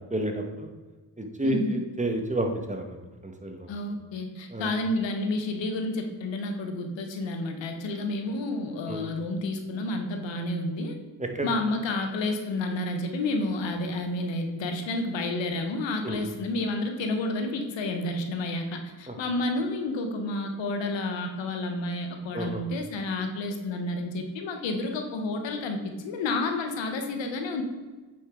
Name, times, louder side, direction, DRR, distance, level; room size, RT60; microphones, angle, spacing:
voice 1, 0.1-0.7 1.2-3.0 3.2-3.7 4.5-4.7 8.9-9.0 11.2-11.5 16.0-16.3 19.1-19.2 22.3-22.6, right 1 dB, 15° right, 3 dB, 1.4 m, -30 dB
voice 2, 1.4-1.8 3.7-11.0 11.4-27.6, left 2 dB, 90° left, 4 dB, 1.1 m, -30 dB
8.9 x 5.5 x 3.7 m, 1.3 s
cardioid pair, 55°, 43 cm